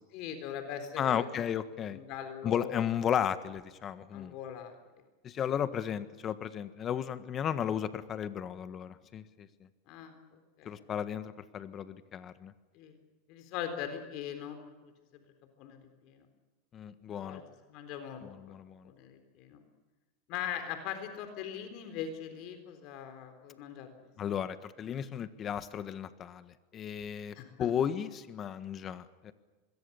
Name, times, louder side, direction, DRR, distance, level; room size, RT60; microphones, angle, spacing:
voice 1, 0.1-1.3 1.9-2.9 4.1-4.7 9.9-10.1 10.6-10.8 12.7-12.9 13.3-15.2 15.6-16.3 17.2-17.4 17.7-18.6 18.8-19.6 20.3-23.9 24.3-24.4 27.3-27.7, left 9 dB, 55° left, 7 dB, 3.8 m, -41 dB
voice 2, 1.0-2.0 2.4-4.3 5.2-9.5 10.6-12.5 16.7-17.4 18.2-18.9 24.2-29.3, left 9 dB, 30° left, 12 dB, 1.5 m, -34 dB
26.0 x 21.5 x 7.1 m, 1.2 s
supercardioid pair, 125°, 0 cm